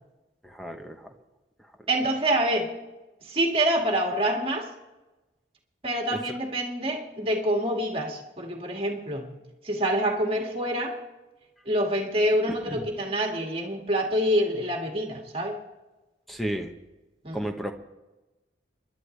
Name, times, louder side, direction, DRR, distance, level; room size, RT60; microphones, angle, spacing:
voice 1, 0.4-1.0 6.1-6.2 12.5-12.8 16.3-16.7 17.3-17.7, right 1 dB, ahead, 5 dB, 1.0 m, -32 dB
voice 2, 1.9-2.7 3.3-4.7 5.8-9.3 9.6-11.0 11.7-15.6 17.2-17.4, right 1 dB, 30° right, 1 dB, 2.1 m, -26 dB
28.5 x 11.5 x 3.3 m, 1.1 s
head